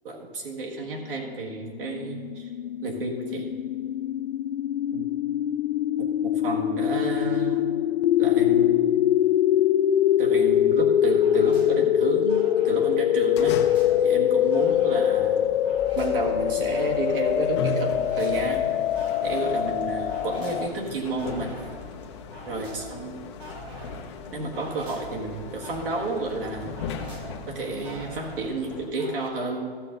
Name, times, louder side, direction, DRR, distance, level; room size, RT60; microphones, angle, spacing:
voice 1, 0.0-2.5 2.8-3.5 4.9-5.1 6.0-7.6 8.2-8.9 10.2-13.6 14.0-15.4 16.0-18.7 19.2-21.6 22.5-23.3 24.3-26.8 27.5-29.8, right 3 dB, 60° right, 0 dB, 1.8 m, -31 dB
sound 1, 1.5-20.7, left 11 dB, 85° left, 0.5 m, -23 dB
sound 2, 11.2-29.3, right 2 dB, 15° right, 1.0 m, -45 dB
sound 3, 12.8-28.9, left 4 dB, 25° left, 0.6 m, -38 dB
14.5 x 6.7 x 3.9 m, 2.2 s
hypercardioid pair, 155°, 31 cm